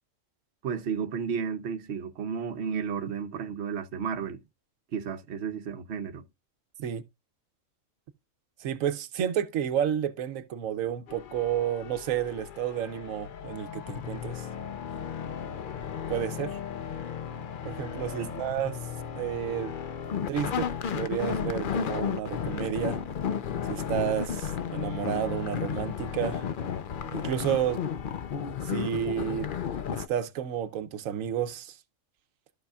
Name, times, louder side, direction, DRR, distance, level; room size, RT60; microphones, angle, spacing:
voice 1, 0.6-4.4 4.9-6.2 18.2-18.3, right 6 dB, 60° right, 1.0 m, -33 dB
voice 2, 8.6-14.5 16.1-16.6 17.6-18.8 19.2-19.7 20.3-20.7 20.9-23.0 23.7-26.4 27.1-27.8 28.6-29.5 29.9-31.7, right 9 dB, 90° right, 1.1 m, -31 dB
sound 1, 11.1-30.1, left 7 dB, 50° left, 0.7 m, -34 dB
14.0 x 5.5 x 2.3 m
omnidirectional pair, 1.3 m